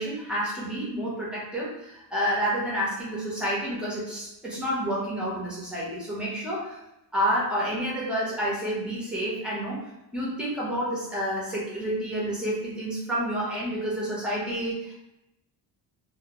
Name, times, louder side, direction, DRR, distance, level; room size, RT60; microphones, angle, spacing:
voice 1, 0.0-6.8 7.1-9.8 10.1-14.9, equal, ahead, -7 dB, 0.7 m, -29 dB
2.1 x 2.1 x 2.8 m, 0.88 s
cardioid pair, 145°, 40 cm